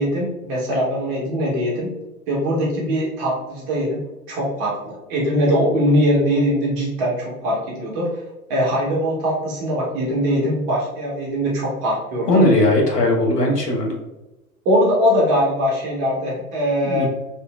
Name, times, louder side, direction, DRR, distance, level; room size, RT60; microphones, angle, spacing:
voice 1, 0.0-1.9 2.3-4.0 4.3-8.2 8.5-12.4 14.7-17.0, equal, 20° right, -3 dB, 0.4 m, -21 dB
voice 2, 12.3-14.0 16.8-17.1, left 1 dB, 90° left, 0 dB, 0.9 m, -18 dB
2.9 x 2.8 x 2.2 m, 1.0 s
figure-of-eight pair, 100°, 47 cm